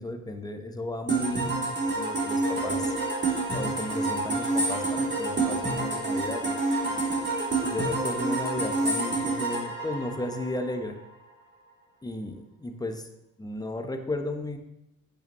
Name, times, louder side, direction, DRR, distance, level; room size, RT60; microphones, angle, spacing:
voice 1, 0.0-2.9 3.5-6.6 6.9-7.0 7.6-11.0 12.0-13.1 13.4-14.6, left 1 dB, 10° left, 6 dB, 1.2 m, -34 dB
sound 1, 1.1-10.8, right 2 dB, 25° right, 3.3 m, -28 dB
10.5 x 9.0 x 3.2 m, 0.90 s
figure-of-eight pair, 65°, 43 cm